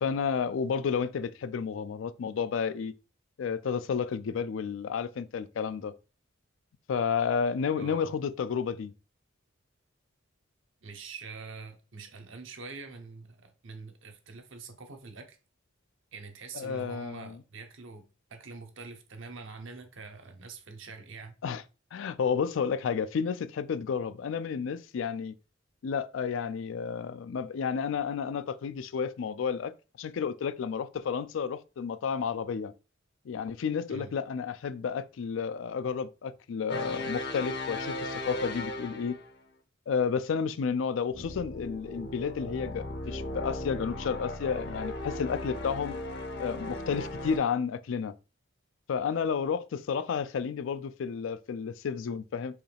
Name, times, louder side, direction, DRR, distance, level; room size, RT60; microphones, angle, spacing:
voice 1, 0.0-2.9 3.4-5.9 6.9-8.9 16.5-17.4 21.4-21.6 21.9-25.3 25.8-29.7 30.0-32.7 33.3-39.2 39.9-45.9 46.4-48.1 48.9-52.6, left 6 dB, 75° left, 0.4 m, -31 dB
voice 2, 7.8-8.1 10.8-15.4 16.1-21.3 33.9-34.1, right 4 dB, 75° right, 0.9 m, -45 dB
sound 1, 36.7-39.4 41.1-47.4, left 1 dB, 55° left, 0.8 m, -37 dB
4.7 x 3.1 x 3.3 m
head